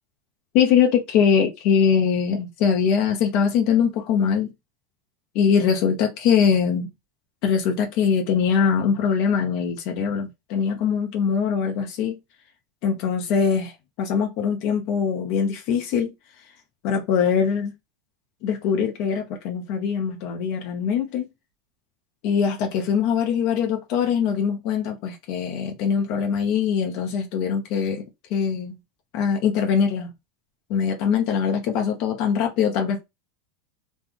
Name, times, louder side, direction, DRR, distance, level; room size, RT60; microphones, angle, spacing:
voice 1, 0.5-4.5 5.3-6.9 7.4-12.2 12.8-13.7 14.0-16.1 16.8-17.7 18.4-21.3 22.2-28.0 28.3-28.8 29.1-30.1 30.7-33.0, left 7 dB, 50° left, 0.9 m, -22 dB
3.2 x 2.5 x 3.5 m
supercardioid pair, 150°, 0 cm